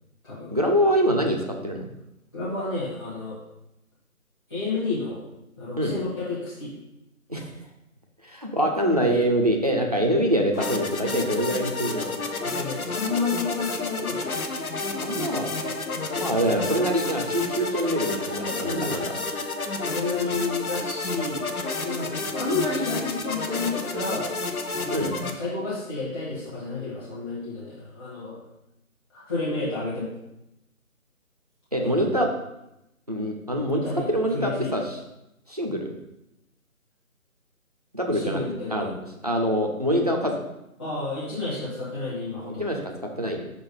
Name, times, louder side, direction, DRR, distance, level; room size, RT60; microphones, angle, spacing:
voice 1, 0.5-1.4 1.6-1.9 5.8-5.9 7.3-7.5 8.2-12.2 15.0-15.5 16.1-19.1 24.9-25.1 31.7-32.3 33.1-33.8 34.1-34.8 35.5-36.0 37.9-38.4 38.7-38.9 39.2-40.4 42.6-43.5, equal, 30° right, 1 dB, 0.6 m, -24 dB
voice 2, 2.3-3.4 4.5-5.2 5.6-6.7 12.4-14.4 16.4-16.8 17.6-17.9 18.6-19.0 19.8-21.5 21.8-24.3 24.7-28.4 29.1-30.1 31.8-32.2 33.5-34.7 38.1-38.9 40.8-42.8, left 3 dB, 15° left, -13 dB, 1.4 m, -31 dB
sound 1, 10.5-25.3, left 3 dB, 75° left, 0.9 m, -30 dB
5.8 x 4.0 x 5.2 m, 0.87 s
figure-of-eight pair, 160°, 43 cm